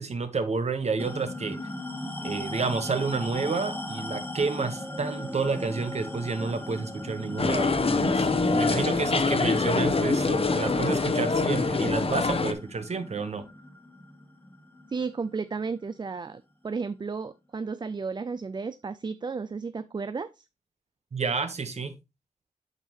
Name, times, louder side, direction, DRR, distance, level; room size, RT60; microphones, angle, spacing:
voice 1, 0.0-1.6 2.2-13.4 21.1-21.9, right 4 dB, 50° right, 1.2 m, -30 dB
sound 1, 1.0-15.8, left 1 dB, 15° left, 1.1 m, -38 dB
sound 2, 7.4-12.5, left 3 dB, 45° left, 1.0 m, -24 dB
voice 2, 14.9-20.4, right 4 dB, 30° right, 0.4 m, -33 dB
8.2 x 5.5 x 3.0 m
cardioid pair, 75°, 14 cm